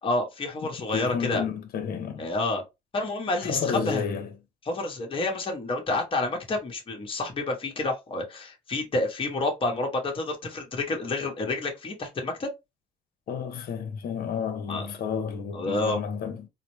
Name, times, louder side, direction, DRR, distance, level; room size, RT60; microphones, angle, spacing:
voice 1, 0.0-1.5 2.2-2.6 2.9-4.0 4.6-12.5 14.7-14.9 15.5-16.0, left 2 dB, 30° left, 1.2 m, -29 dB
voice 2, 0.9-2.3 3.4-4.3 13.3-16.5, left 6 dB, 60° left, 0.9 m, -31 dB
4.1 x 2.1 x 3.1 m
cardioid pair, 110°, 17 cm